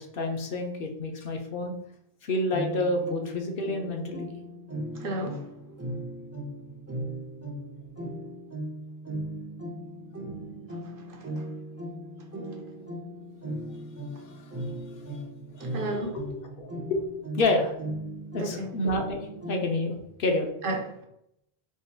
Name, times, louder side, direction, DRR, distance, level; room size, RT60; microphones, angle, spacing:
voice 1, 0.0-1.7 2.2-4.3 13.5-13.8 14.2-15.2 15.5-15.8 16.6-17.0 17.4-17.7 18.3-20.5, left 2 dB, 65° left, 0.8 m, -29 dB
sound 1, 2.5-19.9, right 1 dB, 20° right, 0.4 m, -38 dB
voice 2, 4.9-5.5 10.7-11.4 15.6-16.2 18.4-18.7 20.6-21.0, right 1 dB, 65° right, 0.8 m, -34 dB
3.6 x 2.5 x 2.7 m
omnidirectional pair, 1.0 m